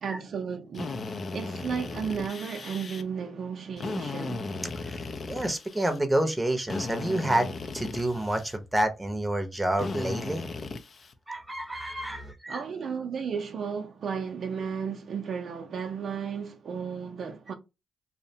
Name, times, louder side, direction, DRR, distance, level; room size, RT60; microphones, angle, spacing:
voice 1, 0.0-4.5 12.5-17.5, right 6 dB, 65° right, 0.4 m, -34 dB
Drill, 0.7-3.0 3.8-6.0 6.7-8.6 9.8-11.1, left 3 dB, 50° left, 0.4 m, -36 dB
voice 2, 5.3-10.4 11.3-12.6, right 1 dB, 15° right, 0.7 m, -28 dB
2.6 x 2.1 x 2.7 m
supercardioid pair, 60°, 0 cm